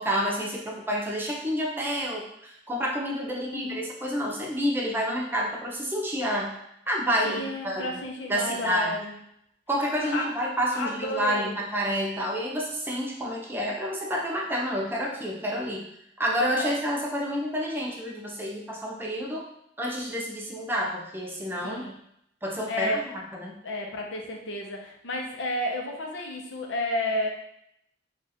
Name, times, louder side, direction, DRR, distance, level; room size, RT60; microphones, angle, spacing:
voice 1, 0.0-6.6 6.9-8.0 8.3-8.9 9.7-15.8 16.2-19.5 19.8-21.8 22.4-23.0 23.3-23.5, equal, 10° right, -2 dB, 0.7 m, -29 dB
voice 2, 3.3-3.8 7.2-9.2 10.0-10.3 10.7-11.6 16.5-16.7 21.6-21.9 22.7-23.0 23.6-27.3, left 1 dB, 85° left, 1 dB, 0.7 m, -32 dB
3.5 x 2.5 x 4.1 m, 0.76 s
head